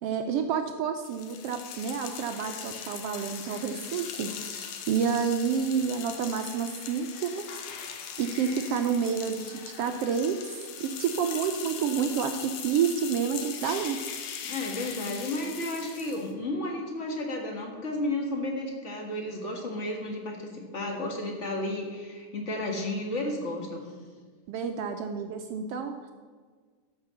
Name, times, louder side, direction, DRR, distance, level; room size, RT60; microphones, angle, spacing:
voice 1, 0.0-7.5 8.2-14.0 24.5-26.1, right 7 dB, 80° right, 6 dB, 1.4 m, -29 dB
sound 1, 1.0-16.3, left 7 dB, 75° left, 2.2 m, -40 dB
voice 2, 14.4-23.9, left 1 dB, 35° left, 1 dB, 1.4 m, -33 dB
13.5 x 5.7 x 6.9 m, 1.5 s
omnidirectional pair, 3.4 m